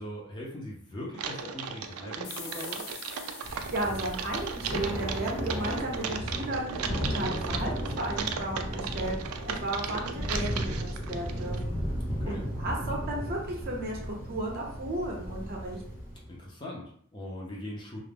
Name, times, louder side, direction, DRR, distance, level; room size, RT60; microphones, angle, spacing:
voice 1, 0.0-2.9 12.1-12.4 16.3-18.0, left 1 dB, 20° left, -3 dB, 0.5 m, -40 dB
Typing, 1.1-11.6, right 7 dB, 80° right, 0.3 m, -37 dB
sound 1, 2.2-5.6, left 5 dB, 80° left, 0.6 m, -45 dB
Thunder / Rain, 3.4-16.3, equal, 40° left, 0.8 m, -35 dB
voice 2, 3.5-7.7 8.0-11.7 12.3-15.8, right 1 dB, 45° right, -1 dB, 0.6 m, -34 dB
2.4 x 2.0 x 3.3 m, 0.62 s
head